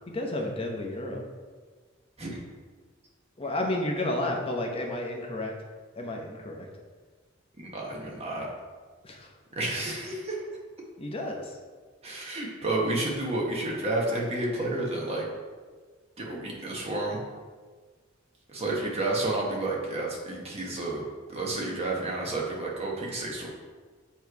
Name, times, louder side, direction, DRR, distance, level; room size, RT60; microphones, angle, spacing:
voice 1, 0.1-1.2 3.4-5.5 6.0-6.7 9.0-9.3 11.0-11.5, left 1 dB, 30° left, 1 dB, 0.8 m, -31 dB
voice 2, 7.6-8.5 9.5-10.4 12.0-15.3 16.2-17.2 18.5-21.0 21.3-23.5, right 2 dB, 30° right, -2 dB, 1.1 m, -30 dB
7.2 x 3.1 x 4.6 m, 1.5 s
head